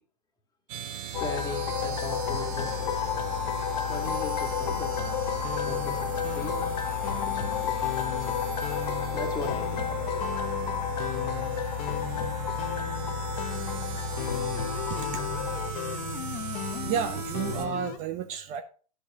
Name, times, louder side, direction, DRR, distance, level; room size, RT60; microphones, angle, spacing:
sound 1, 0.7-17.7, right 9 dB, 55° right, 1.1 m, -38 dB
sound 2, 1.1-15.7, left 8 dB, 75° left, 0.9 m, -31 dB
voice 1, 1.2-3.2 3.9-5.0 5.6-6.7 7.1-7.8 8.0-8.6 9.1-10.2, left 2 dB, 20° left, 4 dB, 1.8 m, -39 dB
sound 3, 5.4-18.0, left 13 dB, 35° left, 0.8 m, -38 dB
voice 2, 16.8-18.6, right 8 dB, 35° right, 7 dB, 0.7 m, -31 dB
13.0 x 5.0 x 2.8 m, 0.40 s
hypercardioid pair, 110°, 21 cm